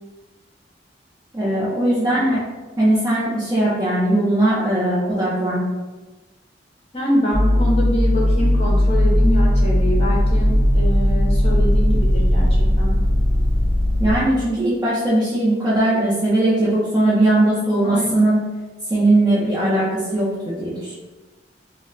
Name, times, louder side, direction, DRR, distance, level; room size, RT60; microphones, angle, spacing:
voice 1, 1.3-2.4 2.8-5.6 14.0-18.4 18.9-20.9, right 1 dB, 20° right, -9 dB, 0.6 m, -19 dB
voice 2, 6.9-12.9 17.8-18.1, left 1 dB, 35° left, -3 dB, 0.7 m, -25 dB
sound 1, 7.3-14.2, equal, 50° right, 1.1 m, -17 dB
2.1 x 2.1 x 3.8 m, 1.2 s
head